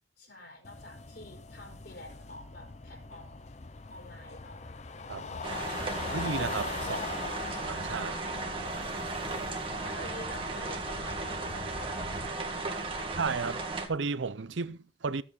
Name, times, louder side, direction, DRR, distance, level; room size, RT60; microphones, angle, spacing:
voice 1, 0.2-3.4 3.9-4.6 5.2-5.5 6.8-7.1 9.8-13.5, left 1 dB, 65° left, 4.4 m, -48 dB
sound 1, 0.6-12.3, left 3 dB, 35° left, 0.7 m, -41 dB
sound 2, 5.4-13.9, right 3 dB, 30° right, 1.6 m, -36 dB
voice 2, 6.1-6.8 7.6-8.2 13.2-13.6 13.9-15.2, right 4 dB, 85° right, 0.6 m, -33 dB
14.5 x 8.0 x 4.0 m
head